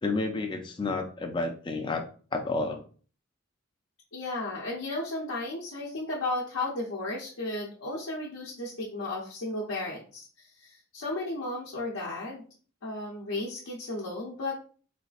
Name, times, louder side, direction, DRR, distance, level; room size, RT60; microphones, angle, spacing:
voice 1, 0.0-2.8, left 3 dB, 20° left, 5 dB, 0.3 m, -31 dB
voice 2, 4.1-12.4 12.8-14.6, left 2 dB, 85° left, -4 dB, 0.8 m, -34 dB
4.1 x 2.4 x 2.4 m, 0.41 s
head